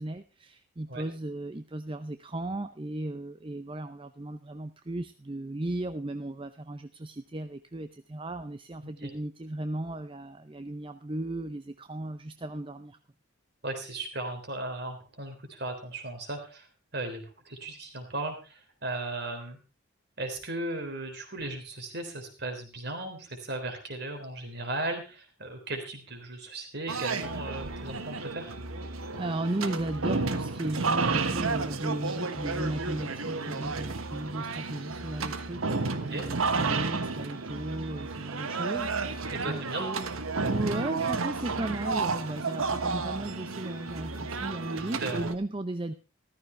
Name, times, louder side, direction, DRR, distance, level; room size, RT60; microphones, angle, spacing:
voice 1, 0.0-13.0 28.9-40.1 40.5-45.9, right 1 dB, 25° right, 10 dB, 0.6 m, -36 dB
voice 2, 13.6-16.7 16.9-19.6 20.2-28.5 35.9-36.3 39.3-39.8 45.0-45.3, right 2 dB, 50° right, 5 dB, 3.6 m, -36 dB
sound 1, 26.9-45.4, right 4 dB, 85° right, 1.3 m, -32 dB
14.0 x 14.0 x 3.3 m, 0.32 s
head